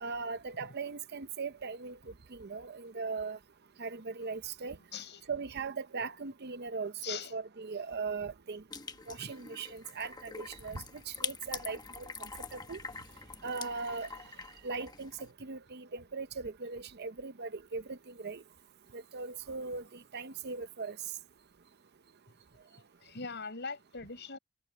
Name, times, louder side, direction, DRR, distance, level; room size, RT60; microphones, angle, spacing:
voice 1, 0.0-2.0 2.3-3.4 3.8-4.8 5.3-8.6 9.1-12.8 13.4-14.2 14.6-18.4 18.9-19.8 20.1-21.0, right 4 dB, 50° right, 0.7 m, -39 dB
voice 2, 4.9-5.3 7.0-7.3 9.2-9.3 23.0-24.4, left 5 dB, 55° left, 7.2 m, -41 dB
sound 1, 8.7-15.3, left 5 dB, 20° left, 1.0 m, -44 dB
head